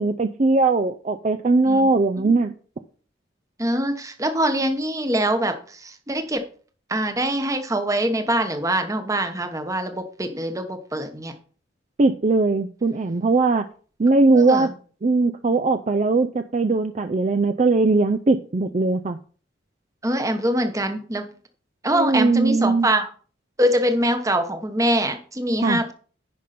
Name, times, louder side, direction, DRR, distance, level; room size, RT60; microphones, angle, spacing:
voice 1, 0.0-2.5 12.0-13.7 14.0-14.7 15.0-19.2 21.9-22.9 25.6-25.8, right 3 dB, 40° right, 7 dB, 0.5 m, -20 dB
voice 2, 1.7-2.3 3.6-6.4 6.9-11.3 14.3-14.7 20.0-21.3 21.8-23.1 23.6-25.9, right 1 dB, 15° right, 7 dB, 1.0 m, -24 dB
10.5 x 5.3 x 4.2 m, 0.42 s
head